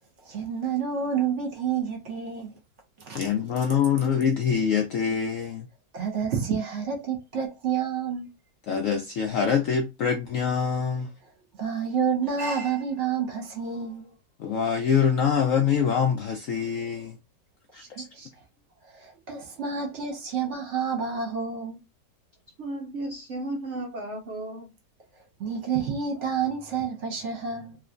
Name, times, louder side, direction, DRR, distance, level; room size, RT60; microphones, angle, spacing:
voice 1, 0.2-2.5 3.0-3.3 5.9-8.3 11.6-14.1 17.8-18.3 18.9-21.8 25.4-27.8, right 6 dB, 50° right, 1.1 m, -29 dB
voice 2, 3.1-5.7 8.7-11.1 14.4-17.2 17.7-18.0, left 7 dB, 75° left, 0.7 m, -25 dB
voice 3, 22.6-24.7, right 1 dB, 70° right, 0.6 m, -34 dB
3.2 x 3.0 x 2.5 m
omnidirectional pair, 1.9 m